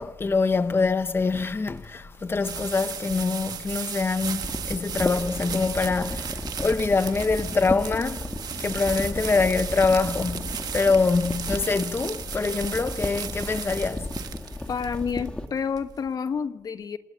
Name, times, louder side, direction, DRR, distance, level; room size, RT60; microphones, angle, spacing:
voice 1, 0.0-8.3 8.6-14.1, left 4 dB, 35° left, 1.2 m, -25 dB
sound 1, 1.4-16.1, right 8 dB, 75° right, 1.4 m, -36 dB
sound 2, 4.4-15.5, left 1 dB, 15° left, 2.3 m, -34 dB
voice 2, 14.7-17.0, left 6 dB, 65° left, 1.3 m, -29 dB
27.0 x 19.0 x 8.3 m
cardioid pair, 85°, 7 cm